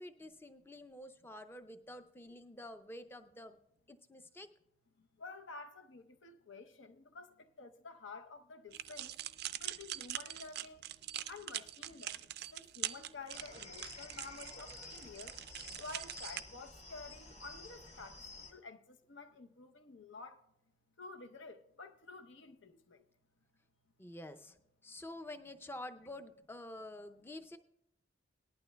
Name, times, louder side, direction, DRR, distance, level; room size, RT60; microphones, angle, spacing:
voice 1, 0.0-3.6 3.9-4.5 24.0-24.6 24.8-27.6, left 1 dB, 10° left, 0.5 m, -49 dB
voice 2, 5.2-7.3 7.6-9.1 9.6-10.8 11.3-12.1 12.5-15.3 15.8-18.2 18.5-20.4 21.0-23.0, left 3 dB, 80° left, 0.8 m, -51 dB
sound 1, 8.7-16.4, right 13 dB, 55° right, 0.3 m, -43 dB
sound 2, 13.3-18.5, left 3 dB, 35° left, 1.5 m, -51 dB
18.5 x 11.5 x 2.3 m
head